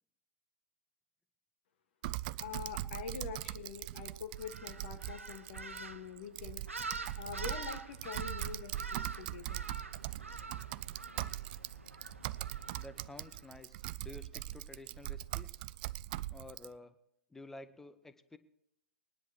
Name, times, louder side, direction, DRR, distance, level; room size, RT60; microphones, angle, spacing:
Typing, 2.0-16.7, right 16 dB, 40° right, 0.4 m, -41 dB
voice 1, 2.4-6.6 7.2-9.6, left 6 dB, 50° left, 8 dB, 1.4 m, -45 dB
sound 1, 4.4-13.5, right 3 dB, 85° right, 1.0 m, -46 dB
voice 2, 12.7-15.6 16.3-17.0 17.3-18.4, left 2 dB, 5° left, 12 dB, 0.8 m, -51 dB
20.5 x 10.5 x 2.9 m, 0.76 s
figure-of-eight pair, 105°, 7 cm